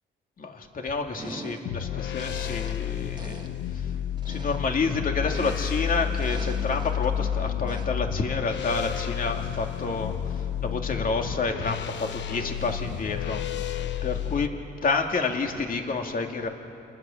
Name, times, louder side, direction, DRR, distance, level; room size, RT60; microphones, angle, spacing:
voice 1, 0.4-3.9 4.3-13.6 14.0-14.5 14.8-16.5, left 4 dB, 45° left, 3 dB, 2.6 m, -29 dB
sound 1, 1.2-1.8 2.2-2.9 3.2-3.6 4.2-5.8 6.2-7.1 7.7-8.1, right 3 dB, 20° right, 1.7 m, -43 dB
sound 2, 1.6-14.5, left 9 dB, 65° left, 1.0 m, -31 dB
29.0 x 20.0 x 7.3 m, 2.6 s
cardioid pair, 90°, 20 cm